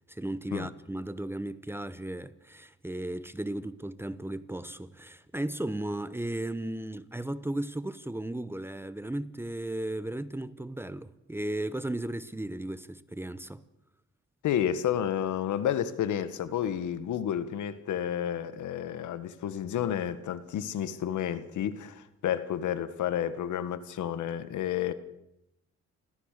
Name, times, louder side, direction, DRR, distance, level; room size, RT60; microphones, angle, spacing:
voice 1, 0.1-13.6, right 1 dB, 10° right, 1.0 m, -35 dB
voice 2, 14.4-24.9, left 10 dB, 75° left, 1.6 m, -31 dB
29.5 x 14.0 x 6.7 m
cardioid pair, 90°, 30 cm